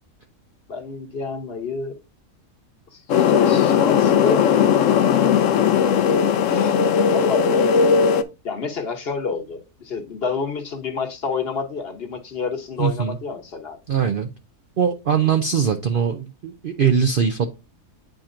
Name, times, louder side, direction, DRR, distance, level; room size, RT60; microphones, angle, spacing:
voice 1, 0.7-2.0 2.9-4.5 6.4-7.8 8.4-13.8, left 5 dB, 45° left, 1.0 m, -29 dB
sound 1, 3.1-8.2, left 7 dB, 70° left, 0.8 m, -17 dB
voice 2, 12.8-13.2 13.9-14.3 14.8-17.5, right 7 dB, 80° right, 0.4 m, -21 dB
8.9 x 4.3 x 2.5 m
omnidirectional pair, 1.6 m